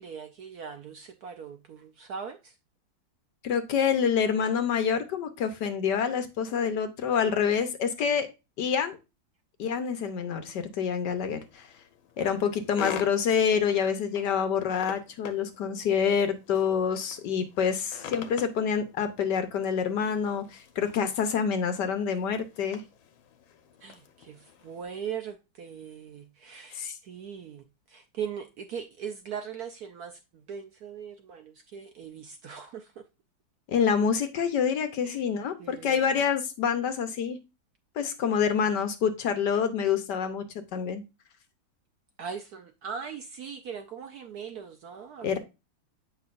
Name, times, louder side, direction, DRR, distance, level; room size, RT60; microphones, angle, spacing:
voice 1, 0.0-2.5 12.2-12.4 23.8-26.8 27.0-32.9 35.0-35.2 35.6-36.2 42.2-45.4, right 7 dB, 70° right, 0.9 m, -40 dB
voice 2, 3.4-8.3 8.6-9.0 9.6-11.7 12.2-22.8 26.7-27.0 33.7-37.4 38.0-40.4 40.7-41.0 45.2-45.4, left 7 dB, 65° left, 1.3 m, -27 dB
sound 1, 11.1-24.8, left 9 dB, 85° left, 1.6 m, -45 dB
7.9 x 5.4 x 2.5 m
omnidirectional pair, 2.1 m